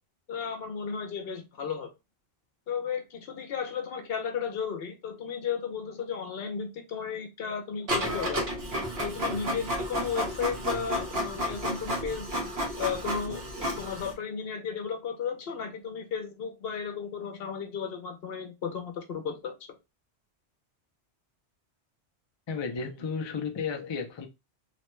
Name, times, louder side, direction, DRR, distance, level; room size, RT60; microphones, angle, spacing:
voice 1, 0.3-1.9 2.7-8.4 9.0-12.3 12.8-13.4 13.8-19.5, left 6 dB, 65° left, 0.9 m, -34 dB
Printer, 7.9-14.1, equal, 65° right, 1.3 m, -32 dB
voice 2, 10.6-10.9 22.5-24.3, left 5 dB, 45° left, 0.3 m, -34 dB
3.0 x 2.1 x 3.0 m
omnidirectional pair, 1.1 m